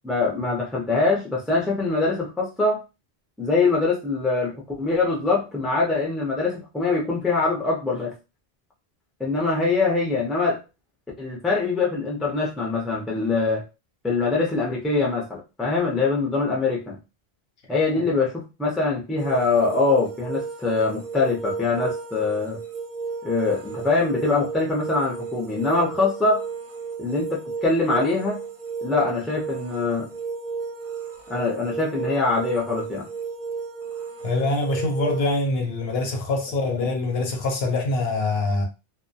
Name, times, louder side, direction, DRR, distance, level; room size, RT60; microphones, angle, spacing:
voice 1, 0.0-2.8 3.4-8.1 9.2-10.6 11.2-13.6 14.0-17.0 17.7-22.6 23.2-26.4 27.0-28.4 28.8-30.1 31.3-33.1 36.7-36.9, left 3 dB, ahead, 0.3 m, -23 dB
sound 1, 19.2-35.2, right 5 dB, 55° right, 0.7 m, -33 dB
voice 2, 34.2-38.6, left 2 dB, 75° left, 0.9 m, -24 dB
2.2 x 2.1 x 2.6 m
omnidirectional pair, 1.0 m